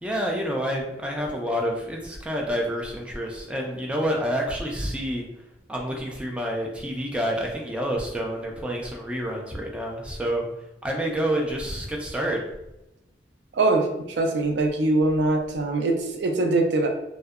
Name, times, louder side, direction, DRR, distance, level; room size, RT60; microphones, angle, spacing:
voice 1, 0.0-5.2 5.7-10.5 10.8-12.5, equal, 5° right, -1 dB, 0.3 m, -28 dB
voice 2, 13.5-16.9, right 2 dB, 75° right, 4 dB, 0.4 m, -23 dB
2.6 x 2.1 x 2.3 m, 0.91 s
head